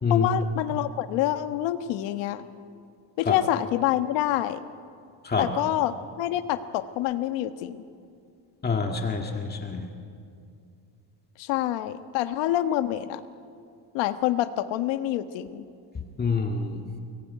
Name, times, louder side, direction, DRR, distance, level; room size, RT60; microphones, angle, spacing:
voice 1, 0.1-2.4 3.2-4.6 5.4-7.8 11.4-13.2 13.9-15.6, left 13 dB, 85° left, 9 dB, 1.5 m, -27 dB
voice 2, 8.6-9.9 16.2-16.8, left 5 dB, 20° left, 3 dB, 1.9 m, -26 dB
29.0 x 21.5 x 9.4 m, 2.4 s
cardioid pair, 150°, 43 cm